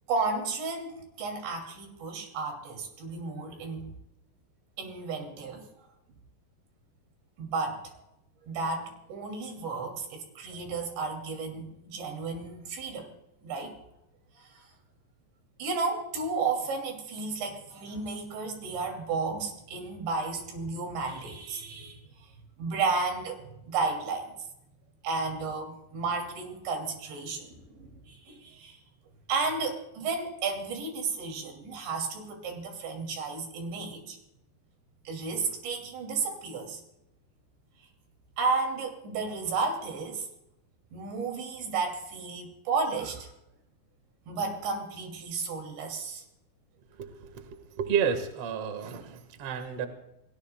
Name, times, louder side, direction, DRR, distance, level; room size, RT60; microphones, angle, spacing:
voice 1, 0.1-4.0 4.8-5.7 7.4-7.8 8.5-13.1 13.4-13.8 14.4-14.6 15.6-22.3 22.6-24.3 25.0-28.8 29.3-34.2 35.0-36.8 38.4-40.3 40.9-43.3 44.3-46.2, right 4 dB, 90° right, 3 dB, 5.1 m, -33 dB
voice 2, 47.0-49.9, right 7 dB, 50° right, 7 dB, 1.8 m, -31 dB
29.0 x 19.5 x 2.3 m, 0.85 s
omnidirectional pair, 5.0 m